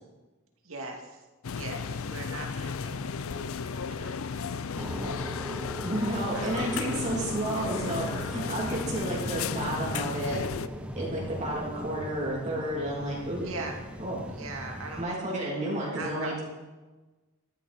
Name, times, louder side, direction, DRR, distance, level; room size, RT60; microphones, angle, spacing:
voice 1, 0.6-1.2 1.5-4.5 4.7-7.2 7.5-8.2 13.4-13.8 14.3-15.7 15.9-16.4, right 2 dB, 65° right, 1 dB, 2.4 m, -42 dB
sound 1, 1.4-10.7, left 5 dB, 70° left, 0.5 m, -34 dB
sound 2, 4.8-15.0, equal, 5° right, 0.9 m, -39 dB
voice 2, 5.8-10.4 10.9-13.5 14.0-14.2 15.0-16.4, right 1 dB, 35° right, -5 dB, 3.1 m, -31 dB
13.5 x 13.5 x 4.3 m, 1.2 s
head